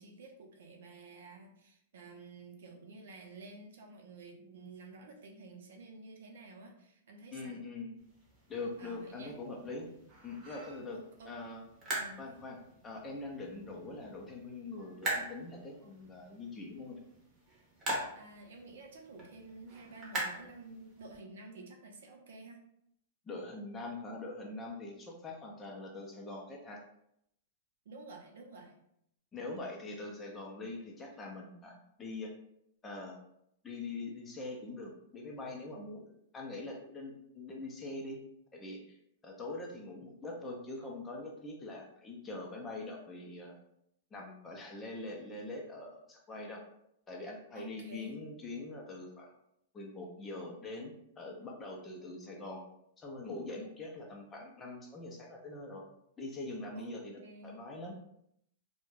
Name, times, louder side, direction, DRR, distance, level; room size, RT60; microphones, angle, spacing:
voice 1, 0.0-7.5 8.8-9.3 10.9-11.3 11.9-12.2 18.1-22.6 27.9-28.7 47.5-48.1 56.7-56.9 57.2-57.6, right 3 dB, 75° right, 2 dB, 0.6 m, -51 dB
voice 2, 7.3-7.9 8.5-9.9 10.2-11.0 11.3-11.6 12.2-12.6 12.8-17.0 23.2-26.8 29.3-32.3 32.8-33.2 33.6-38.2 38.5-39.0 39.2-43.6 44.1-46.6 47.1-49.4 49.7-52.6 53.0-55.8 56.2-58.0, left 2 dB, 15° left, -1 dB, 0.4 m, -43 dB
sound 1, 8.0-21.2, right 1 dB, 20° right, 0.7 m, -43 dB
2.3 x 2.1 x 3.1 m, 0.75 s
supercardioid pair, 165°, 0 cm